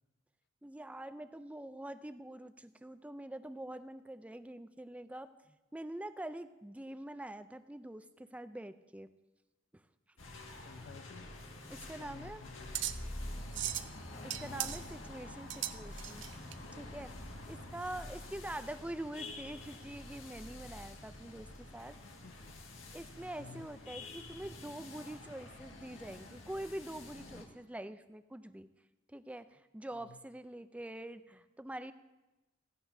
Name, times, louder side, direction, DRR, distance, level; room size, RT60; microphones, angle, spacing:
voice 1, 0.6-5.3 5.7-9.1 11.7-12.4 14.1-16.2 16.7-17.1 17.5-21.5 21.7-22.0 22.9-28.7 29.1-31.9, right 1 dB, 5° right, 11 dB, 0.4 m, -45 dB
sound 1, 10.2-27.5, left 2 dB, 85° left, 1.8 m, -48 dB
voice 2, 10.6-11.3 12.0-12.8 14.4-14.7 22.0-22.6 23.4-23.7 30.0-30.2, left 5 dB, 60° left, 12 dB, 0.5 m, -53 dB
sound 2, 11.4-16.6, right 12 dB, 65° right, 0.5 m, -40 dB
16.0 x 15.5 x 2.7 m, 1.1 s
head